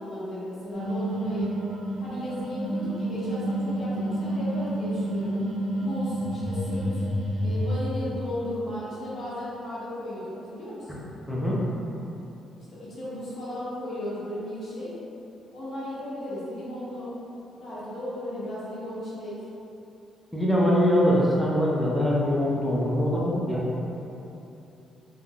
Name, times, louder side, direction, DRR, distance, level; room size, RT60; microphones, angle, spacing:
voice 1, 0.0-1.5 2.0-5.3 5.8-7.0 7.4-11.0 12.7-14.9 15.5-17.1 17.5-19.3, left 1 dB, 50° left, -10 dB, 1.1 m, -35 dB
sound 1, 0.7-7.7, right 1 dB, 65° right, 0.8 m, -29 dB
voice 2, 11.3-11.6 20.3-23.7, equal, ahead, -6 dB, 0.6 m, -23 dB
3.4 x 2.3 x 2.2 m, 2.9 s
cardioid pair, 90°, 0 cm